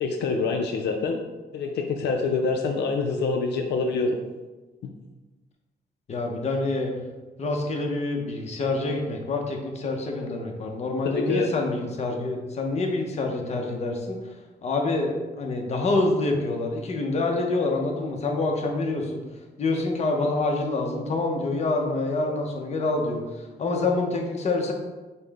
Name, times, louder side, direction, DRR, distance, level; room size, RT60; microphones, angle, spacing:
voice 1, 0.0-1.2 1.5-4.2 4.8-4.9 11.0-11.5, left 4 dB, 80° left, 3 dB, 0.4 m, -26 dB
voice 2, 6.1-6.9 7.4-14.3 14.6-19.2 19.6-24.7, left 2 dB, 40° left, 1 dB, 0.7 m, -26 dB
5.4 x 2.0 x 3.3 m, 1.2 s
cardioid pair, 125°, 17 cm